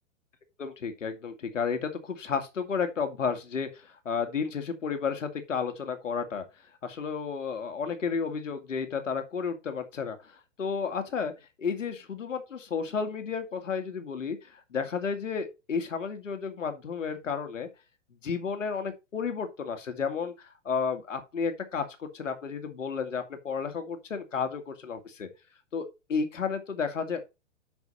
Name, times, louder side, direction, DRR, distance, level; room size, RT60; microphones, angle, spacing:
voice 1, 0.6-6.4 6.8-11.3 11.6-17.7 18.2-25.3 25.7-27.3, left 6 dB, 90° left, 2.2 m, -32 dB
8.1 x 6.3 x 4.1 m
hypercardioid pair, 125°, 37 cm